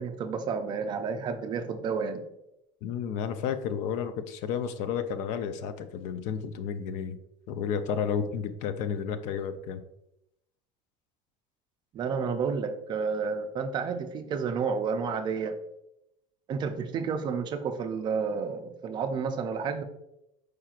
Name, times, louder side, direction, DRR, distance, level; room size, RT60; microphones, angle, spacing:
voice 1, 0.0-2.2 11.9-15.6 16.5-19.8, right 5 dB, 30° right, 7 dB, 0.4 m, -30 dB
voice 2, 2.8-7.2 7.5-9.8, left 7 dB, 55° left, 10 dB, 0.4 m, -32 dB
4.8 x 4.3 x 2.4 m, 0.83 s
cardioid pair, 160°, 15 cm